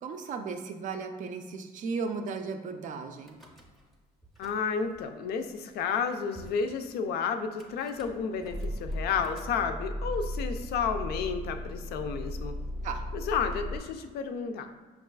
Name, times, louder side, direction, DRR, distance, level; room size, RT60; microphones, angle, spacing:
voice 1, 0.0-3.4 12.8-13.0, right 5 dB, 50° right, 6 dB, 0.4 m, -35 dB
Car / Engine starting / Idling, 3.2-4.0 4.2-5.0 5.7-5.8 5.9-6.0 6.3-6.6 7.6-13.8, equal, ahead, 0.6 m, -37 dB
voice 2, 4.4-12.5 13.1-14.7, left 6 dB, 70° left, 7 dB, 0.4 m, -31 dB
5.3 x 2.4 x 2.3 m, 1.3 s
cardioid pair, 110°, 17 cm